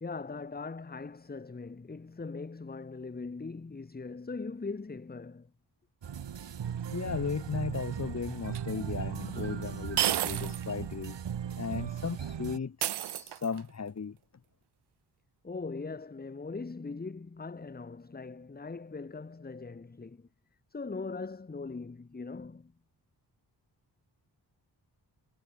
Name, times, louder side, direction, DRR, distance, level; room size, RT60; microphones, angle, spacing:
voice 1, 0.0-5.5 15.4-20.3 20.7-22.7, left 4 dB, 20° left, 1.2 m, -40 dB
sound 1, 6.0-12.6, right 8 dB, 85° right, 3.5 m, -37 dB
voice 2, 6.9-11.2 11.6-14.2, left 5 dB, 40° left, 1.5 m, -36 dB
sound 2, 8.5-8.6 10.0-10.7 11.0-11.1 12.8-13.7, right 12 dB, 70° right, 0.6 m, -31 dB
wide cardioid pair, 105°, 42 cm